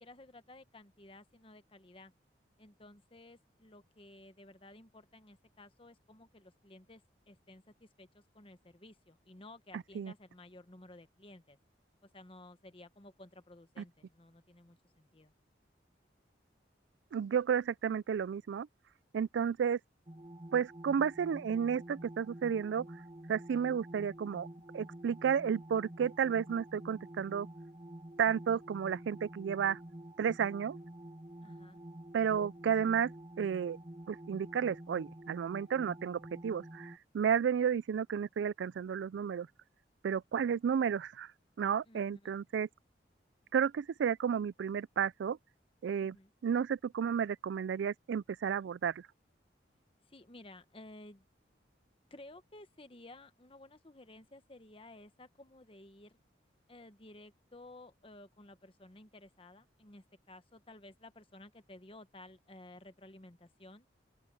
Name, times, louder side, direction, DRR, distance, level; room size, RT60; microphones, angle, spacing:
voice 1, 0.0-2.1 2.6-11.6 12.0-15.3 31.4-31.8 41.8-42.4 46.0-46.3 50.1-51.2 52.1-56.2 56.7-63.8, left 2 dB, 30° left, 1.2 m, -55 dB
voice 2, 9.7-10.1 13.8-13.9 17.1-18.7 19.1-19.8 20.5-22.9 23.3-24.5 24.7-27.5 28.2-29.8 30.2-30.8 32.1-33.1 33.4-33.8 34.1-39.5 40.0-41.3 41.6-42.7 43.5-45.4 45.8-46.2 46.4-48.9, right 7 dB, 80° right, 0.3 m, -32 dB
sound 1, 20.1-37.0, right 1 dB, 30° right, 1.5 m, -49 dB
open air
head